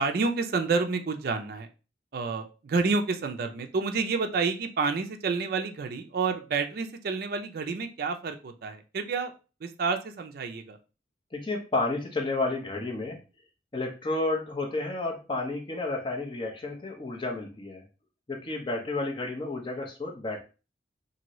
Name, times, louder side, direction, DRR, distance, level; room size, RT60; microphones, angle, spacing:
voice 1, 0.0-1.7 2.1-9.3 9.6-10.8, right 4 dB, 55° right, 6 dB, 0.4 m, -29 dB
voice 2, 11.3-13.2 13.7-17.8 18.3-20.4, left 2 dB, 30° left, 1 dB, 0.7 m, -31 dB
2.7 x 2.6 x 3.0 m, 0.33 s
head